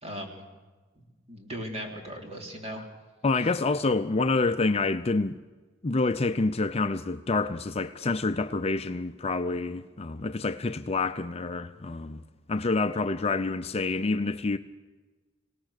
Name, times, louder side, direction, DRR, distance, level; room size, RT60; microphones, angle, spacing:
voice 1, 0.0-0.4 1.0-2.8 3.3-3.5, equal, 35° right, 3.6 m, -38 dB
voice 2, 3.2-5.4 5.8-12.2 12.5-14.6, left 3 dB, 30° left, 0.6 m, -27 dB
26.0 x 18.0 x 6.6 m
head